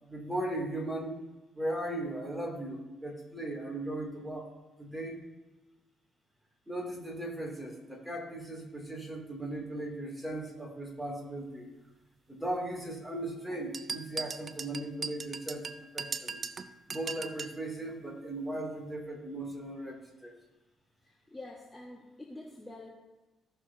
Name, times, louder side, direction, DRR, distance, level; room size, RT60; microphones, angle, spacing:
voice 1, 0.1-1.2 1.5-4.5 4.8-5.3 6.7-11.7 12.3-16.4 16.9-20.3, right 1 dB, 5° right, -1 dB, 2.5 m, -37 dB
sound 1, 13.7-17.6, right 5 dB, 40° right, 0.5 m, -39 dB
voice 2, 21.0-22.9, left 2 dB, 15° left, -1 dB, 1.2 m, -47 dB
16.0 x 6.5 x 2.7 m, 1.1 s
cardioid pair, 90°, 0 cm